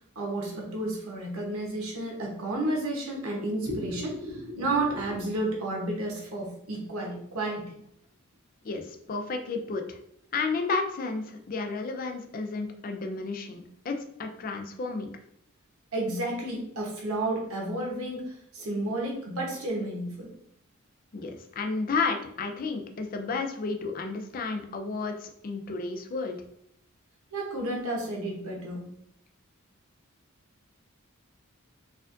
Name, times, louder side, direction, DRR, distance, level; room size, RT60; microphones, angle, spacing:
voice 1, 0.1-7.7 15.9-20.3 27.3-28.9, right 1 dB, 85° right, -1 dB, 1.1 m, -31 dB
voice 2, 8.6-10.0 10.3-15.1 21.1-26.4, left 4 dB, 40° left, 5 dB, 0.4 m, -32 dB
4.1 x 2.5 x 2.6 m, 0.72 s
head